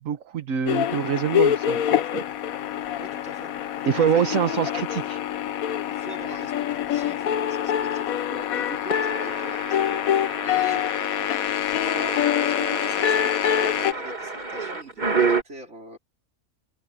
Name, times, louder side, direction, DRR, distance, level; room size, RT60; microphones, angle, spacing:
voice 1, 0.0-2.0 3.8-5.2, right 8 dB, 70° right, 1.5 m, -25 dB
sound 1, 0.7-13.9, left 10 dB, 85° left, 1.3 m, -25 dB
voice 2, 3.0-3.6 4.0-4.7 5.9-10.9 11.6-16.0, right 2 dB, 55° right, 4.1 m, -43 dB
sound 2, 8.9-15.4, right 4 dB, 35° right, 2.4 m, -30 dB
omnidirectional pair, 1.4 m